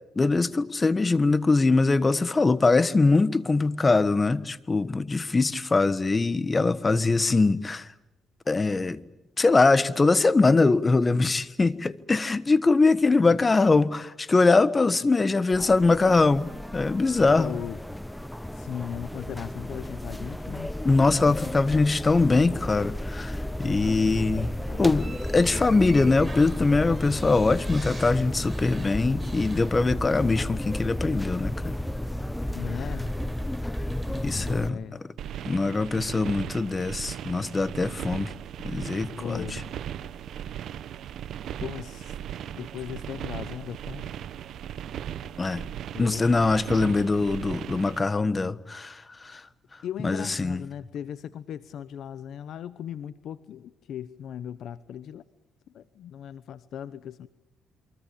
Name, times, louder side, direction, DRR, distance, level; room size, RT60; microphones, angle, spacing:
voice 1, 0.1-7.9 8.5-9.0 9.4-17.6 20.5-20.6 20.8-24.5 24.8-31.7 34.2-34.8 35.4-38.3 38.6-39.6 45.4-45.6 46.0-49.4 50.0-50.6, left 3 dB, 25° left, 1.3 m, -22 dB
sound 1, 15.5-34.7, left 1 dB, 5° left, 1.1 m, -33 dB
voice 2, 17.4-17.8 18.5-21.5 23.6-25.1 32.5-33.1 34.1-35.0 39.2-39.7 41.6-42.2 42.6-44.1 45.9-46.3 49.8-55.2 55.7-57.3, left 9 dB, 70° left, 0.9 m, -38 dB
sound 2, 24.9-30.4 30.7-30.9 32.2-32.3 32.9-34.6, right 2 dB, 15° right, 5.4 m, -47 dB
sound 3, 35.2-48.0, right 10 dB, 70° right, 1.2 m, -37 dB
28.0 x 23.5 x 8.6 m
cardioid pair, 90°, 0 cm